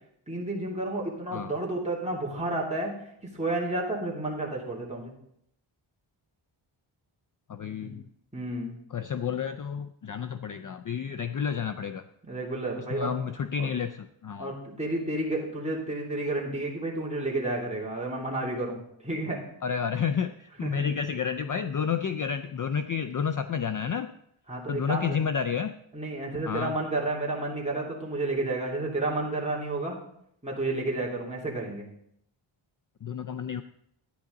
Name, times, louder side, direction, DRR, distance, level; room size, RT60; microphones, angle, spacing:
voice 1, 0.3-2.9 3.3-5.1 7.8-7.9 8.3-8.8 12.2-13.1 13.6-13.7 14.4-19.4 20.6-20.8 24.5-25.2 25.9-30.0 30.4-31.9, right 2 dB, 15° right, -4 dB, 3.0 m, -31 dB
voice 2, 7.5-8.0 8.9-12.0 12.9-14.5 19.6-24.1 24.7-25.7 26.5-26.8 33.0-33.6, left 7 dB, 45° left, 10 dB, 0.4 m, -30 dB
12.0 x 9.5 x 3.9 m, 0.72 s
wide cardioid pair, 115°, 49 cm